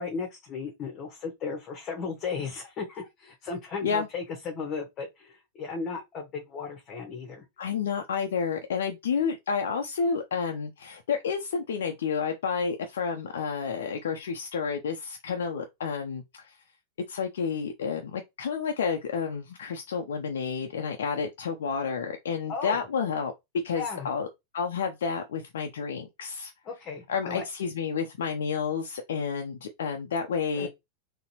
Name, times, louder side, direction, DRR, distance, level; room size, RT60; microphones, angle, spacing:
voice 1, 0.0-7.4 22.5-22.8 23.8-24.1 26.6-27.4 30.5-30.7, left 5 dB, 30° left, 1.0 m, -35 dB
voice 2, 7.6-16.6 17.1-23.3 23.6-24.3 24.5-26.5 27.1-30.7, left 6 dB, 60° left, 0.6 m, -30 dB
4.0 x 2.9 x 2.9 m
figure-of-eight pair, 90°, 0 cm